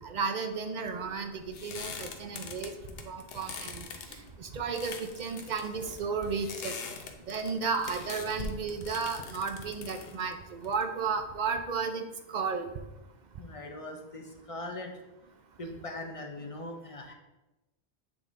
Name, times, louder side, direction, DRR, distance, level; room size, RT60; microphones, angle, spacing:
voice 1, 0.0-2.7 3.0-6.7 7.3-12.7, right 5 dB, 55° right, 6 dB, 0.6 m, -33 dB
sound 1, 0.8-11.2, left 5 dB, 70° left, 0.9 m, -43 dB
voice 2, 13.4-14.9 15.6-17.1, left 1 dB, 40° left, 3 dB, 0.6 m, -40 dB
7.9 x 3.6 x 3.6 m, 1.0 s
omnidirectional pair, 1.1 m